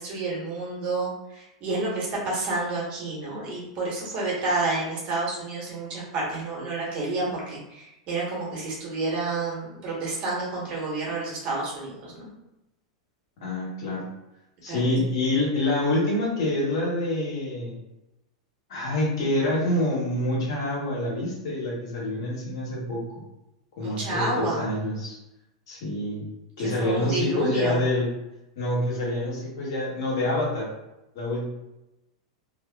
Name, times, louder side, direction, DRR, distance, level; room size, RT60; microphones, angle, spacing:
voice 1, 0.0-12.3 14.7-14.9 23.8-24.6 26.8-27.8, right 2 dB, 40° right, -4 dB, 1.1 m, -29 dB
voice 2, 13.4-14.1 14.6-17.7 18.7-23.0 23.8-25.2 25.7-26.2 26.6-28.1 28.6-30.7 31.1-31.4, left 1 dB, 65° left, -4 dB, 1.2 m, -26 dB
2.5 x 2.3 x 2.3 m, 0.91 s
hypercardioid pair, 105°, 3 cm